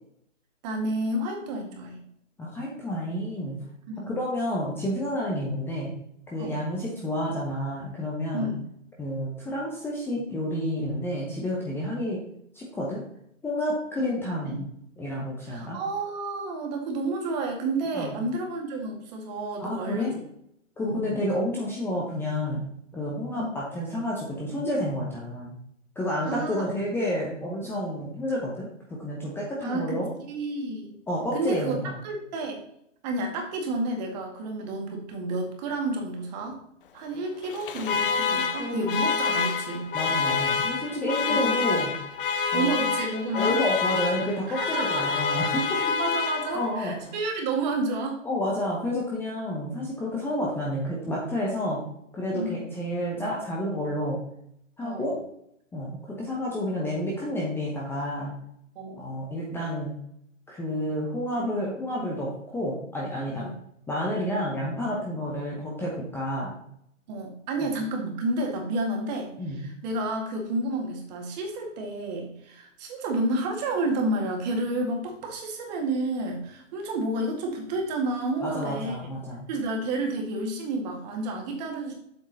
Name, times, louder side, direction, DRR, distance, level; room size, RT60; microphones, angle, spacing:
voice 1, 0.6-2.0 3.9-4.2 6.4-6.6 8.3-8.6 14.0-14.2 14.5-14.6 15.5-20.1 20.8-21.0 23.4-23.5 26.2-26.7 29.6-31.0 31.3-32.6 33.0-36.6 36.9-39.9 41.3-41.6 42.5-43.6 44.5-45.2 45.8-48.2 52.3-52.7 54.8-55.1 58.8-59.0 63.4-63.5 67.1-79.0 79.5-81.9, right 2 dB, 35° right, 2 dB, 2.0 m, -30 dB
voice 2, 2.4-3.6 4.1-5.9 6.3-8.5 9.0-12.2 12.5-13.0 13.4-14.7 15.0-15.8 17.9-18.2 19.6-20.1 20.8-22.7 22.9-25.5 26.0-30.1 31.1-31.9 38.3-38.9 39.9-42.0 42.5-42.7 43.3-46.0 46.5-47.0 48.2-51.8 52.1-54.2 54.8-55.2 55.7-58.3 59.0-60.0 60.5-63.5 63.9-66.6 67.6-67.7 69.4-69.7 78.4-79.5, left 1 dB, 5° left, -4 dB, 0.9 m, -30 dB
Alarm, 37.4-46.9, left 5 dB, 45° left, 0.7 m, -27 dB
7.7 x 6.2 x 4.1 m, 0.73 s
figure-of-eight pair, 130°, 39 cm